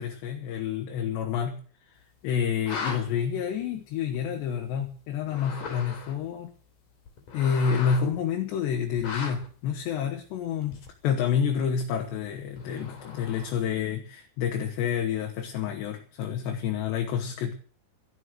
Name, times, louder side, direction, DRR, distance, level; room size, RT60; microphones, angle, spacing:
voice 1, 0.0-1.6 2.2-6.5 7.3-17.5, left 7 dB, 75° left, 2 dB, 3.6 m, -29 dB
sound 1, 2.5-3.0 4.1-4.2 5.2-6.3 7.1-8.1 9.0-9.5 10.7-11.1 12.6-13.7, left 5 dB, 50° left, 4.1 m, -38 dB
13.5 x 11.5 x 7.8 m, 0.42 s
omnidirectional pair, 5.2 m